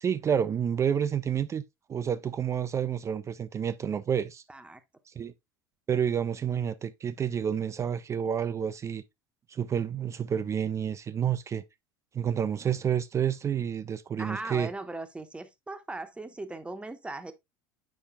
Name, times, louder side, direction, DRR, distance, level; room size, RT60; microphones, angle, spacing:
voice 1, 0.0-1.6 1.9-4.4 5.2-5.3 5.9-9.0 9.5-11.6 12.1-14.7, right 8 dB, 25° right, 0.4 m, -29 dB
voice 2, 4.5-4.8 14.2-17.3, right 2 dB, 10° right, 0.8 m, -38 dB
8.3 x 5.3 x 2.2 m
figure-of-eight pair, 70°, 12 cm